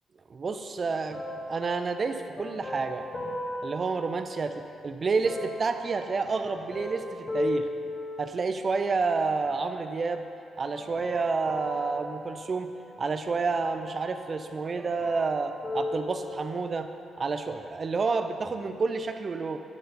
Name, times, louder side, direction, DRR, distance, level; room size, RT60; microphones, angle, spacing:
voice 1, 0.3-3.1 3.6-7.7 8.2-10.2 10.6-12.7 13.0-16.9 17.2-19.6, right 4 dB, 45° right, 8 dB, 0.5 m, -29 dB
sound 1, 1.1-4.7 5.2-8.7 9.4-10.1 10.7-13.0 13.5-14.5 14.8-16.8 17.5-17.6, left 1 dB, 25° left, 1.7 m, -37 dB
11.0 x 3.9 x 6.6 m, 2.7 s
supercardioid pair, 55°, 0 cm